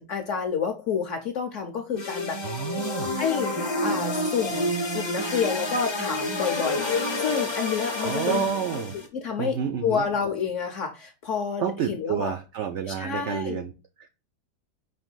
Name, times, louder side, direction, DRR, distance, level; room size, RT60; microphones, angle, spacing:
voice 1, 0.0-2.4 3.2-3.5 3.8-6.9 7.2-8.4 9.1-9.6 9.8-12.3 12.9-13.6, left 6 dB, 65° left, 4 dB, 0.8 m, -29 dB
sound 1, 2.0-9.1, left 2 dB, 30° left, 0.5 m, -29 dB
voice 2, 2.4-3.1 8.0-8.9 9.4-10.1 11.6-13.7 14.0-14.1, right 8 dB, 90° right, 7 dB, 0.6 m, -29 dB
5.3 x 2.6 x 3.8 m, 0.30 s
omnidirectional pair, 1.8 m